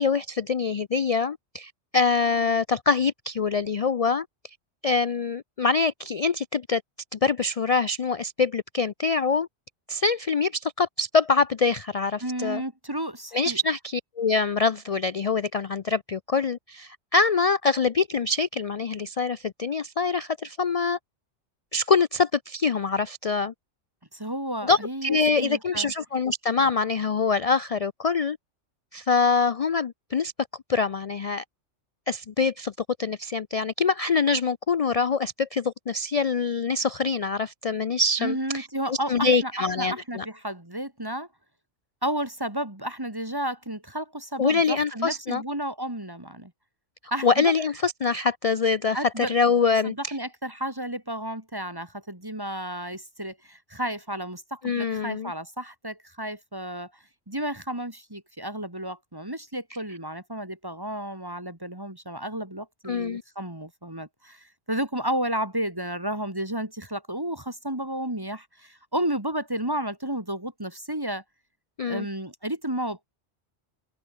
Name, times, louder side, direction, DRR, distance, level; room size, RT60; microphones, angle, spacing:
voice 1, 0.0-4.3 4.8-6.8 7.1-9.5 9.9-12.6 13.3-21.0 21.7-23.5 24.6-28.4 28.9-30.3 30.7-31.4 32.1-32.7 33.0-40.3 44.4-45.4 47.2-50.1 54.6-55.3 62.9-63.2 71.8-72.1, left 4 dB, 55° left, 0.4 m, -24 dB
voice 2, 12.2-13.6 24.1-25.9 38.2-41.3 42.0-46.5 47.1-47.5 48.9-49.3 49.8-56.9 57.3-71.2 71.8-73.1, right 1 dB, 20° right, 2.4 m, -32 dB
open air
omnidirectional pair, 1.2 m